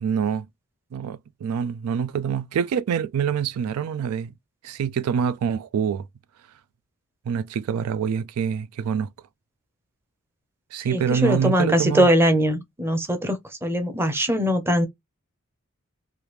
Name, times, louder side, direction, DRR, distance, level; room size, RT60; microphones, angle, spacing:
voice 1, 0.0-0.5 0.9-4.3 4.6-6.0 7.3-9.1 10.7-12.1, right 7 dB, 85° right, 0.3 m, -25 dB
voice 2, 10.8-14.9, equal, 10° right, 0.6 m, -21 dB
3.4 x 2.4 x 3.0 m
head